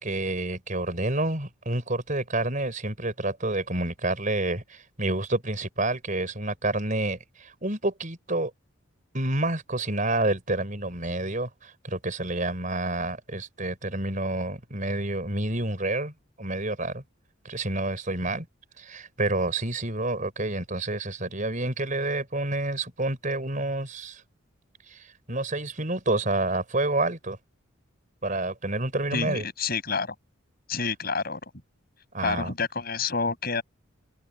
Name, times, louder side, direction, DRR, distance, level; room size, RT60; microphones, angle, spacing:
voice 1, 0.0-8.5 9.1-17.0 17.4-18.5 18.8-24.2 24.9-27.4 28.2-29.5 32.1-32.5, right 2 dB, 40° right, 5.4 m, -29 dB
voice 2, 29.1-30.1 30.7-31.4 32.2-33.6, left 4 dB, 50° left, 7.9 m, -28 dB
head